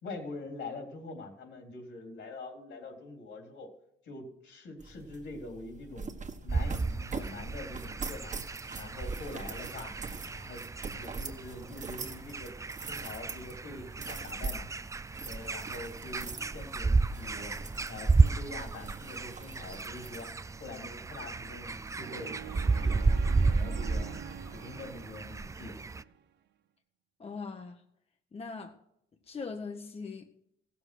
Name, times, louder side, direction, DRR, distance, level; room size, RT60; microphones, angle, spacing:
voice 1, 0.0-3.7 4.0-6.1 6.4-8.4 8.7-10.0 10.3-10.6 10.9-12.5 12.8-14.7 15.2-17.6 17.9-20.3 20.6-24.2 24.5-25.8, left 2 dB, 70° left, 3 dB, 3.7 m, -44 dB
sound 1, 4.8-22.0, right 4 dB, 40° right, 1.6 m, -44 dB
sound 2, 6.5-26.0, right 3 dB, 15° right, 0.4 m, -32 dB
sound 3, 22.0-26.2, right 10 dB, 60° right, 0.7 m, -45 dB
voice 2, 27.2-27.8 28.3-28.7 29.3-30.3, left 4 dB, 30° left, 5 dB, 1.0 m, -40 dB
15.5 x 7.1 x 6.3 m, 0.77 s
cardioid pair, 90°, 20 cm